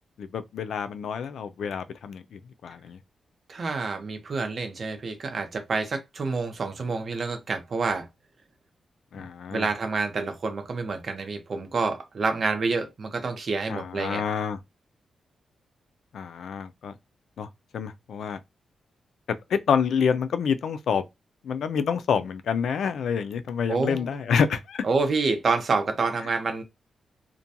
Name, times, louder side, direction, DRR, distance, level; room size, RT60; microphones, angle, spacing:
voice 1, 0.2-3.0 9.1-9.7 13.7-14.6 16.1-16.9 17.4-17.5 17.7-18.4 19.5-21.0 21.4-24.8, left 6 dB, 80° left, 0.3 m, -27 dB
voice 2, 3.5-8.1 9.1-14.2 23.7-24.1 24.8-26.6, right 4 dB, 50° right, 0.7 m, -28 dB
2.4 x 2.2 x 2.7 m
cardioid pair, 115°, 0 cm